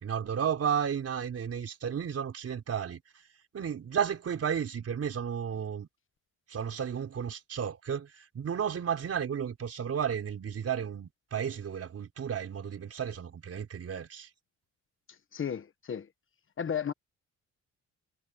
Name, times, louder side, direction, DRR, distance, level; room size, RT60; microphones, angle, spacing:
voice 1, 0.0-3.0 3.5-5.9 6.5-8.1 8.3-14.3, right 8 dB, 50° right, 4.0 m, -33 dB
voice 2, 15.3-16.1 16.6-16.9, left 8 dB, 45° left, 1.3 m, -33 dB
cardioid pair, 90°, 30 cm